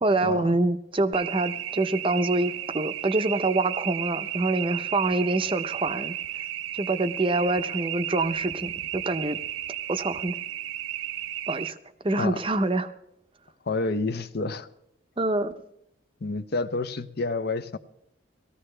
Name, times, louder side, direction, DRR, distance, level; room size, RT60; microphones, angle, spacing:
voice 1, 0.0-6.1 6.7-9.4 9.9-10.4 11.5-11.8 12.0-12.9 15.2-15.5, right 2 dB, 25° right, 10 dB, 0.6 m, -26 dB
sound 1, 1.1-11.7, right 12 dB, 80° right, 0.5 m, -33 dB
voice 2, 13.7-14.7 16.2-17.8, left 3 dB, 50° left, 12 dB, 0.6 m, -29 dB
19.0 x 14.5 x 3.3 m, 0.77 s
head